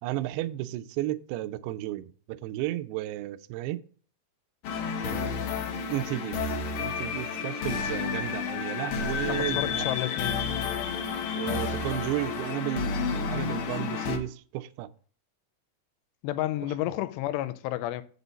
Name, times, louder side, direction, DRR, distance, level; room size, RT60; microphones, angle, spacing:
voice 1, 0.0-3.8 5.0-5.5 5.9-6.4 6.8-9.9 11.3-12.9 13.3-14.9, right 15 dB, 85° right, 2.4 m, -33 dB
sound 1, 4.6-14.2, left 5 dB, 70° left, 2.3 m, -31 dB
voice 2, 9.3-10.4 16.2-18.0, left 14 dB, 85° left, 2.8 m, -31 dB
8.0 x 6.8 x 4.0 m
omnidirectional pair, 5.0 m